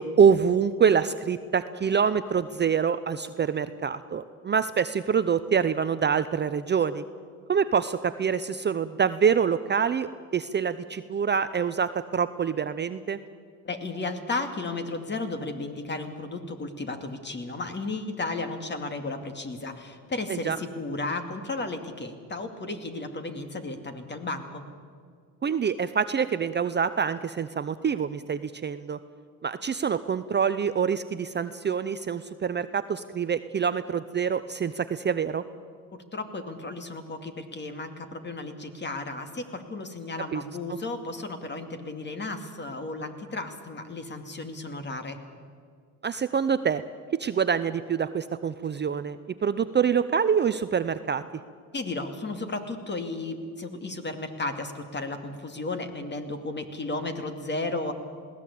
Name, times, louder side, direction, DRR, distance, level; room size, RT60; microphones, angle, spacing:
voice 1, 0.0-7.0 7.5-13.2 20.3-20.6 25.4-29.0 29.4-35.4 40.3-40.4 46.0-46.8 47.2-51.2, right 7 dB, 30° right, 12 dB, 0.7 m, -25 dB
voice 2, 13.6-24.7 35.9-45.2 51.7-57.9, left 2 dB, 30° left, 7 dB, 2.4 m, -34 dB
20.5 x 17.0 x 8.5 m, 2.1 s
cardioid pair, 95°, 37 cm